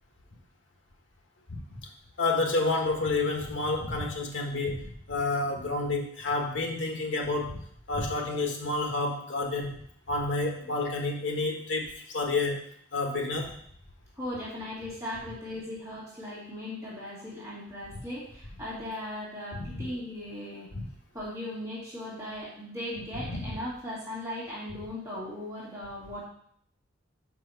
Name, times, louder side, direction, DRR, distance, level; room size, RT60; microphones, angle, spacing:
voice 1, 2.2-9.8 10.1-12.7 12.9-13.6 19.5-19.8 20.7-20.8 23.3-23.4, left 3 dB, 80° left, 1 dB, 1.4 m, -30 dB
voice 2, 14.2-20.7 21.1-26.3, left 1 dB, 15° right, -8 dB, 2.1 m, -38 dB
5.3 x 4.7 x 5.7 m, 0.63 s
head